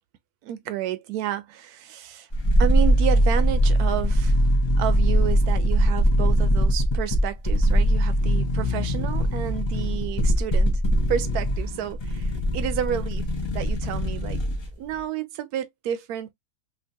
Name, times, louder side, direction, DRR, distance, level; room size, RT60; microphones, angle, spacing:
voice 1, 0.4-2.3 2.6-4.5 4.8-10.8 11.1-14.4 14.8-16.3, right 10 dB, 75° right, 1.1 m, -31 dB
sound 1, 2.3-14.7 15.0-15.1, equal, 50° left, 0.3 m, -22 dB
2.9 x 2.5 x 2.6 m
omnidirectional pair, 1.7 m